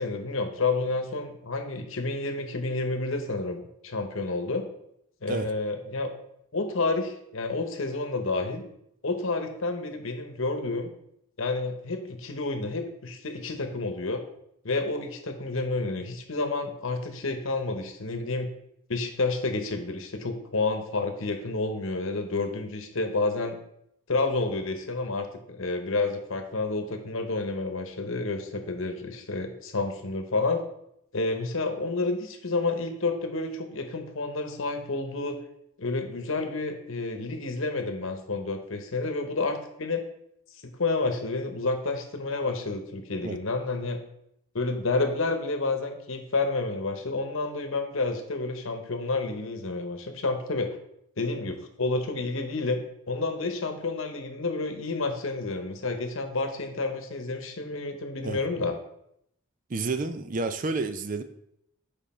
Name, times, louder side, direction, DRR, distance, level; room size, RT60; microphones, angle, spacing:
voice 1, 0.0-4.6 5.2-6.1 6.5-8.6 9.0-10.9 11.4-14.2 14.6-18.5 18.9-23.6 24.1-30.6 31.1-35.4 35.8-40.0 40.6-44.0 44.5-50.8 51.2-52.8 53.1-58.8, left 3 dB, 70° left, 7 dB, 1.0 m, -30 dB
voice 2, 59.7-61.2, right 3 dB, 40° right, 10 dB, 0.5 m, -30 dB
7.3 x 5.0 x 4.3 m, 0.76 s
head